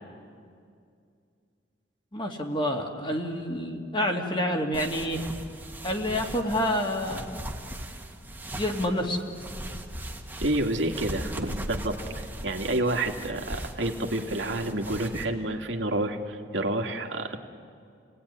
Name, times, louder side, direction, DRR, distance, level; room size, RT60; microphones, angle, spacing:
voice 1, 2.1-5.2 5.8-7.3 8.5-9.2, equal, 25° left, 2 dB, 2.4 m, -28 dB
sound 1, 4.7-15.2, right 1 dB, 10° right, 1.8 m, -39 dB
voice 2, 10.4-17.4, right 1 dB, 90° right, 3 dB, 2.2 m, -29 dB
29.5 x 18.5 x 9.9 m, 2.3 s
head